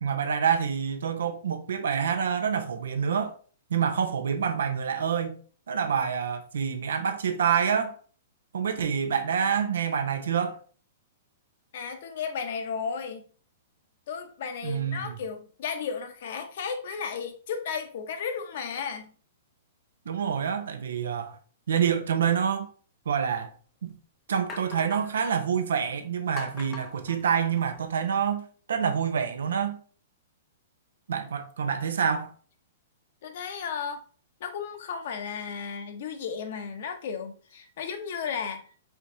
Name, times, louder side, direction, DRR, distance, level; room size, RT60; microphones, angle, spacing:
voice 1, 0.0-3.3 3.7-5.4 5.7-8.0 8.5-10.6 14.6-15.2 20.1-21.4 21.7-22.7 23.1-23.5 23.8-24.0 24.3-29.8 31.1-32.3, right 7 dB, 85° right, 0.7 m, -27 dB
voice 2, 11.7-13.2 14.1-19.1 33.2-34.0 34.4-38.7, left 6 dB, 55° left, 0.7 m, -34 dB
sound 1, 23.1-23.2 23.8-23.9 24.5-25.3 26.4-27.9, left 3 dB, 25° left, 0.6 m, -41 dB
4.5 x 3.6 x 2.7 m
hypercardioid pair, 155°, 0 cm